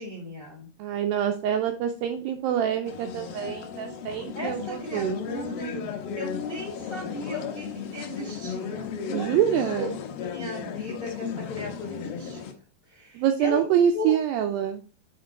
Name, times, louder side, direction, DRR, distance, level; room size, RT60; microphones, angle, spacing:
voice 1, 0.0-0.7 4.3-9.3 9.7-9.9 10.2-12.5 12.9-13.6 13.9-14.1, left 2 dB, 45° left, 0 dB, 0.7 m, -36 dB
voice 2, 0.8-5.2 9.1-10.0 13.2-14.8, right 9 dB, 85° right, 6 dB, 2.0 m, -25 dB
sound 1, 2.9-12.5, left 6 dB, 75° left, 2.5 m, -35 dB
8.3 x 4.4 x 3.9 m, 0.37 s
omnidirectional pair, 4.7 m